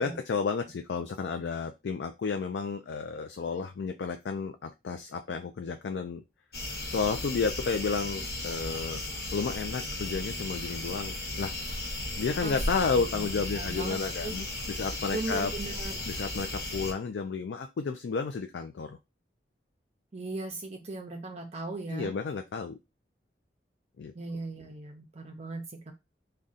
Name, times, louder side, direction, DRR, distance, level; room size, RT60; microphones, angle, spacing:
voice 1, 0.0-6.2 6.9-9.0 9.3-11.5 12.2-15.5 16.1-19.0 21.9-22.8 24.0-24.1, left 5 dB, 80° left, 6 dB, 0.4 m, -32 dB
sound 1, 6.5-16.9, left 1 dB, 60° left, 1.1 m, -35 dB
voice 2, 12.4-13.2 13.5-14.4 15.1-16.0 20.1-22.1 24.1-25.9, right 2 dB, 35° right, 3 dB, 0.5 m, -38 dB
3.7 x 2.2 x 3.9 m, 0.24 s
head